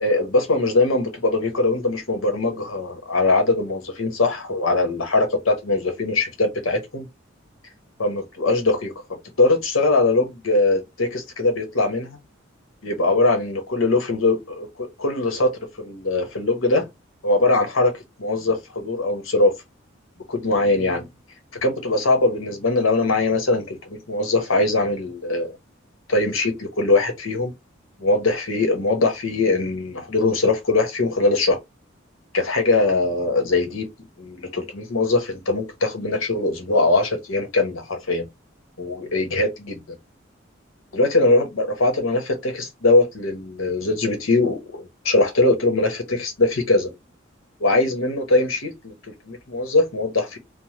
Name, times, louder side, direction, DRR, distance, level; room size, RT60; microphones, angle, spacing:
voice 1, 0.0-7.0 8.0-8.9 9.4-12.2 12.8-15.5 15.8-16.9 17.2-19.5 20.3-21.1 21.6-25.6 26.1-27.5 28.0-31.6 32.3-33.9 34.2-38.3 38.8-40.0 40.9-46.9 47.6-48.9 49.3-50.4, left 2 dB, 90° left, 1.0 m, -21 dB
3.3 x 2.2 x 2.8 m
head